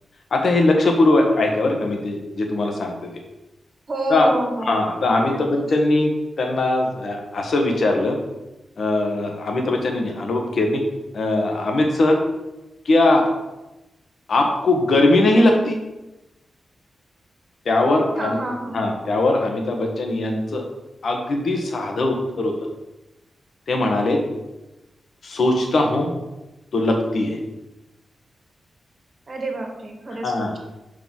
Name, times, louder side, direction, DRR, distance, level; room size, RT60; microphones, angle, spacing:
voice 1, 0.3-3.1 4.1-4.3 4.7-8.2 8.8-10.8 11.1-12.2 12.8-13.2 14.3-15.8 17.6-18.4 18.7-20.6 21.0-22.5 23.7-24.2 25.2-26.1 26.7-27.4 30.2-30.5, left 2 dB, 60° left, 3 dB, 1.5 m, -20 dB
voice 2, 3.9-4.9 5.3-5.7 18.2-19.0 29.3-30.6, right 2 dB, 45° right, 2 dB, 1.7 m, -29 dB
5.6 x 5.0 x 6.2 m, 1.0 s
wide cardioid pair, 95°, 0 cm